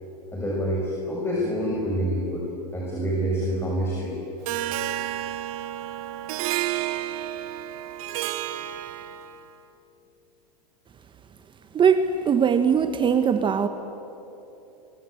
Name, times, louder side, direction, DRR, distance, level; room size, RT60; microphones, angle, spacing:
voice 1, 0.3-2.5 2.7-4.1, equal, 10° left, -3 dB, 6.3 m, -27 dB
Harp, 4.5-9.5, right 13 dB, 60° right, 1.4 m, -31 dB
voice 2, 11.7-13.7, right 7 dB, 25° right, 9 dB, 1.3 m, -20 dB
29.0 x 23.5 x 7.9 m, 3.0 s
hypercardioid pair, 110°, 20 cm